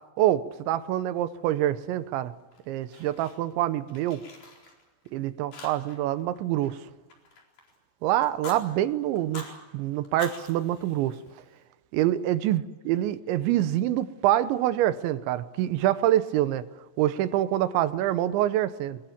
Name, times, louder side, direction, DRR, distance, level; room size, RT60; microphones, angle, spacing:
voice 1, 0.2-2.3 2.7-4.2 5.1-6.8 8.0-9.5 9.7-11.2 11.9-16.6 17.0-19.0, right 13 dB, 80° right, 13 dB, 3.2 m, -26 dB
Fire, 2.5-3.6 3.9-5.1 5.5-6.1 6.3-7.8 8.2-8.6 9.2-9.5 10.0-11.6, left 3 dB, 50° left, 5.7 m, -45 dB
23.5 x 23.5 x 7.3 m, 1.2 s
omnidirectional pair, 5.3 m